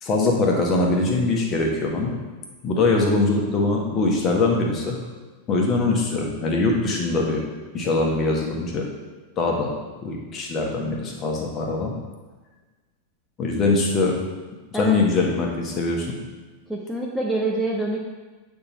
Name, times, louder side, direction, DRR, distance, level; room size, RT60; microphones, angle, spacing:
voice 1, 0.0-2.2 2.6-5.0 5.5-7.4 7.7-8.8 9.4-9.7 10.0-11.9 13.4-14.2 14.7-16.2, left 3 dB, 30° left, -1 dB, 1.4 m, -22 dB
voice 2, 16.7-18.1, right 2 dB, ahead, -4 dB, 0.8 m, -26 dB
8.5 x 3.7 x 4.3 m, 1.3 s
figure-of-eight pair, 90°, 0 cm